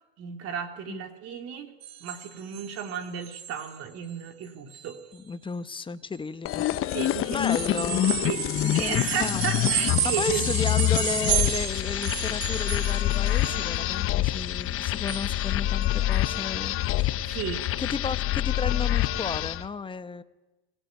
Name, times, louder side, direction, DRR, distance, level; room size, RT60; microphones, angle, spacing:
voice 1, 0.2-1.7 2.0-5.0 6.9-7.7 8.2-10.5 17.2-17.6, right 8 dB, 50° right, 5 dB, 3.2 m, -34 dB
sound 1, 1.8-2.9 3.2-3.8 4.1-4.3 4.7-4.9 7.5-14.0 14.3-15.5 15.8-15.9 16.1-16.5 17.0-17.1, right 11 dB, 90° right, 1.8 m, -32 dB
voice 2, 5.1-7.0 7.3-8.1 8.6-9.7 10.0-17.2 17.8-20.2, left 5 dB, 15° left, 12 dB, 1.2 m, -33 dB
sound 2, 6.5-19.7, left 14 dB, 45° left, 1.1 m, -26 dB
25.5 x 17.5 x 9.6 m, 1.1 s
hypercardioid pair, 100°, 30 cm